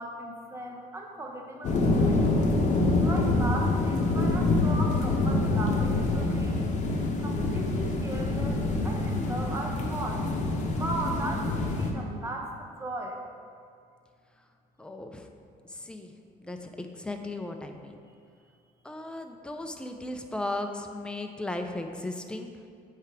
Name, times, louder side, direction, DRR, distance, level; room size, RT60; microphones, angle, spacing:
voice 1, 0.0-2.3 3.0-6.6 7.2-10.3 10.8-13.2, right 1 dB, 15° right, 1 dB, 0.9 m, -37 dB
sound 1, 1.6-11.9, left 2 dB, 45° left, 0.9 m, -26 dB
voice 2, 14.8-15.3 15.7-16.1 16.4-18.0 18.8-22.5, left 2 dB, 5° left, 5 dB, 0.5 m, -36 dB
8.2 x 3.4 x 4.8 m, 2.3 s
cardioid pair, 110°, 17 cm